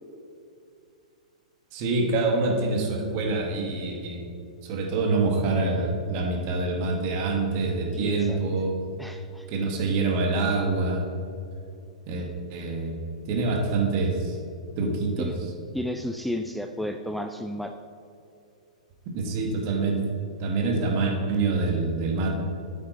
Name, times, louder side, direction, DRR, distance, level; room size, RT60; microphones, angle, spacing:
voice 1, 1.7-4.2 4.6-8.8 9.5-11.0 12.1-13.0 13.3-14.4 14.8-15.5 19.1-20.0 20.4-22.4, right 3 dB, 45° right, 1 dB, 2.0 m, -26 dB
voice 2, 7.9-8.4 9.0-9.5 15.2-15.4 15.7-17.7, left 1 dB, ahead, 6 dB, 0.4 m, -32 dB
9.3 x 8.4 x 4.1 m, 2.5 s
hypercardioid pair, 110°, 4 cm